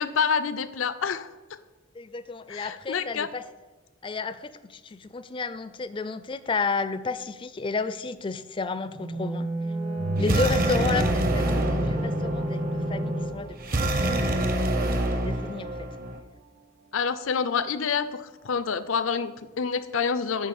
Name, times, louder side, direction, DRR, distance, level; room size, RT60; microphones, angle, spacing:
voice 1, 0.0-1.6 2.5-3.3 16.9-20.5, left 6 dB, 85° left, 13 dB, 0.5 m, -28 dB
voice 2, 2.0-3.4 4.0-9.5 10.2-13.6 13.8-15.9, left 4 dB, 25° left, 13 dB, 0.4 m, -32 dB
sound 1, 8.9-13.3, right 1 dB, 65° right, 2.2 m, -30 dB
sound 2, 10.0-14.9 15.4-15.5, right 2 dB, 85° right, 0.4 m, -36 dB
sound 3, 10.2-16.2, right 1 dB, 45° right, 0.8 m, -27 dB
9.2 x 5.2 x 6.0 m, 1.2 s
head